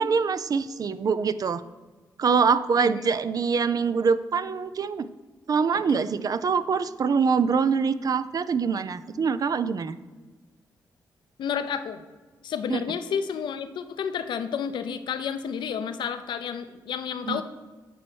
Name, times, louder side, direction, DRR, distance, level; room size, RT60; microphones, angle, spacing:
voice 1, 0.0-1.6 2.2-5.1 5.5-10.0 12.7-12.8 17.3-17.4, right 5 dB, 50° right, 14 dB, 0.4 m, -24 dB
voice 2, 11.4-12.0 12.4-17.4, left 7 dB, 75° left, 10 dB, 0.5 m, -31 dB
8.9 x 3.1 x 6.2 m, 1.3 s
supercardioid pair, 55°, 8 cm